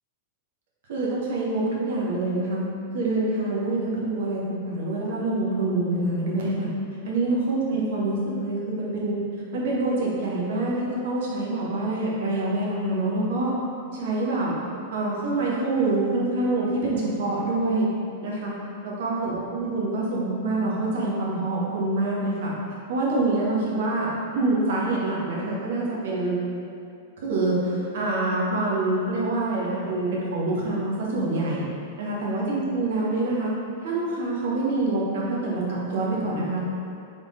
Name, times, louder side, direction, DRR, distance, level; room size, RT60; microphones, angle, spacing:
voice 1, 0.9-2.6 2.9-6.7 7.0-9.2 9.5-13.5 13.9-14.5 14.9-17.9 18.2-18.5 18.8-22.5 22.9-24.1 24.3-26.4 27.2-31.6 32.0-33.5 33.8-36.6, right 2 dB, 60° right, -5 dB, 1.1 m, -26 dB
3.7 x 3.7 x 3.7 m, 2.5 s
figure-of-eight pair, 100°, 0 cm